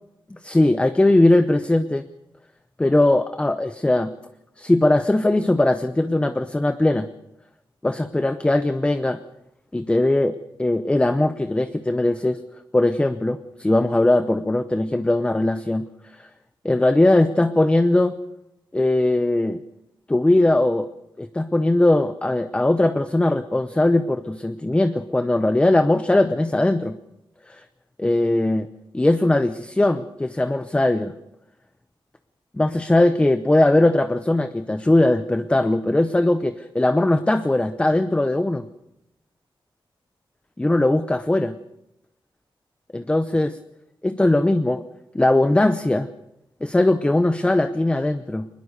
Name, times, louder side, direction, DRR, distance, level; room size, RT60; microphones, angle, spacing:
voice 1, 0.4-2.0 2.8-4.1 4.6-7.1 7.8-9.2 9.7-12.4 12.7-15.9 16.2-16.3 16.6-18.2 18.7-19.6 20.1-20.9 21.2-27.0 27.5-27.6 28.0-28.7 28.9-31.1 32.5-38.7 40.6-41.6 42.9-43.6 44.0-44.8 45.1-46.1 46.6-48.5, left 1 dB, 10° left, 11 dB, 0.7 m, -20 dB
22.5 x 21.0 x 6.7 m, 0.86 s
wide cardioid pair, 140°, 9 cm